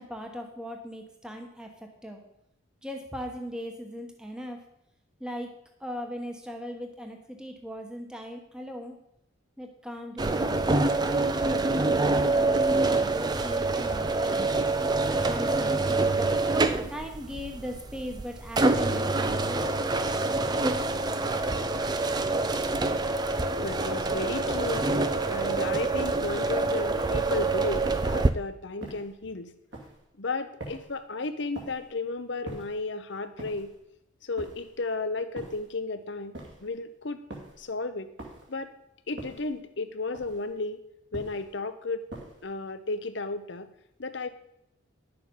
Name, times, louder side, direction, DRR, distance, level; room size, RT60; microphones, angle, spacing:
voice 1, 0.0-1.7 2.0-2.2 2.8-4.6 5.2-5.5 5.8-9.0 9.6-10.9 11.4-14.6 15.2-16.4 16.9-19.7, equal, 5° right, 3 dB, 1.1 m, -39 dB
sound 1, 10.2-28.3, right 2 dB, 20° right, 0.4 m, -26 dB
voice 2, 23.6-24.9 25.3-29.5 30.2-33.7 34.2-36.3 36.6-37.2 37.6-38.1 38.5-38.7 39.1-40.8 41.1-42.1 42.4-43.7 44.0-44.3, left 3 dB, 60° left, 10 dB, 0.8 m, -33 dB
sound 2, 24.1-24.5 25.0-25.4 26.0-26.3 26.9-27.3 27.8-28.3 28.8-29.2 29.7-30.1 30.6-31.0 31.5-31.9 32.4-32.8 33.4-33.8 34.4-34.8 35.4-35.7 36.3-36.7 37.3-37.6 38.2-38.6 39.2-39.6 40.1-40.5 41.1-41.5 42.1-42.5, right 1 dB, 60° right, 2.4 m, -44 dB
11.0 x 6.9 x 5.4 m, 0.80 s
head